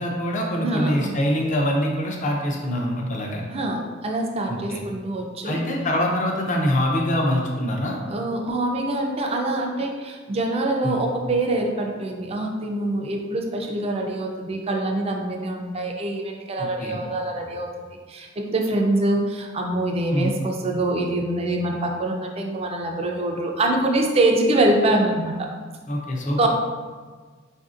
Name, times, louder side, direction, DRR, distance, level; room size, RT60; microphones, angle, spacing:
voice 1, 0.0-3.4 4.5-4.8 5.4-8.0 10.8-11.0 16.6-17.0 20.1-20.3 25.9-26.5, left 1 dB, 40° left, 0 dB, 0.6 m, -24 dB
voice 2, 0.6-1.1 3.5-5.6 8.1-25.5 26.4-26.5, right 2 dB, 30° right, 1 dB, 0.4 m, -24 dB
4.8 x 2.6 x 2.4 m, 1.5 s
head